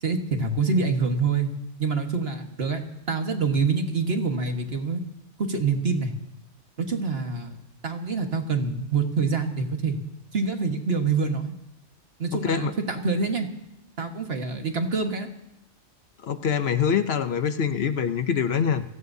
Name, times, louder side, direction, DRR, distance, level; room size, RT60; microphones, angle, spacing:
voice 1, 0.0-1.5 1.8-2.8 3.1-5.0 5.4-6.1 6.8-7.6 7.8-10.0 10.3-11.5 12.2-13.5 14.0-15.3, right 4 dB, 55° right, 4 dB, 1.7 m, -26 dB
voice 2, 12.3-12.8 16.2-18.8, left 7 dB, 60° left, 10 dB, 1.0 m, -24 dB
28.0 x 17.5 x 2.7 m, 0.85 s
omnidirectional pair, 1.2 m